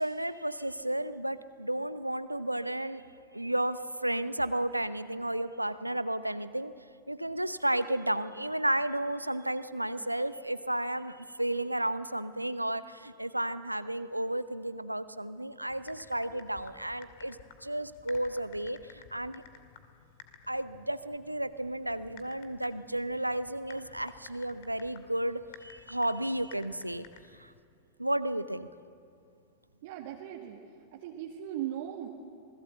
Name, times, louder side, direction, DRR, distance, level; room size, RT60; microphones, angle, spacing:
voice 1, 0.0-3.0 3.3-6.7 7.1-19.4 20.5-27.1 27.4-27.5 28.0-28.7, right 1 dB, 85° right, 14 dB, 0.8 m, -33 dB
Typing, 15.7-27.6, left 8 dB, 50° left, 2.3 m, -55 dB
voice 2, 29.8-30.6 30.9-32.1, right 11 dB, 50° right, 0 dB, 1.9 m, -38 dB
27.0 x 20.0 x 7.9 m, 2.4 s
figure-of-eight pair, 90°, 0 cm